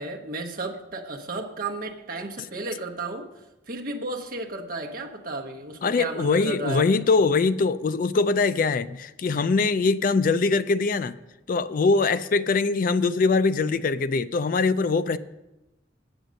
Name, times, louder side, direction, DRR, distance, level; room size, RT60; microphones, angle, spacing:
voice 1, 0.0-3.3 3.7-7.0, right 2 dB, 50° right, 2 dB, 1.0 m, -33 dB
voice 2, 5.8-11.2 11.5-15.2, left 4 dB, 45° left, 14 dB, 0.3 m, -22 dB
8.1 x 7.9 x 6.3 m, 0.97 s
head